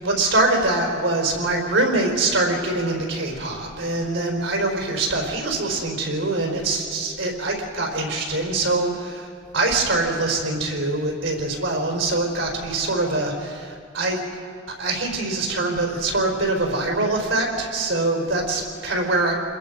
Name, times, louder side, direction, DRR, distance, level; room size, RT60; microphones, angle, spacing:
voice 1, 0.0-9.3 9.5-14.2 14.8-19.3, right 2 dB, 75° right, 0 dB, 4.7 m, -23 dB
29.0 x 21.5 x 5.4 m, 2.3 s
head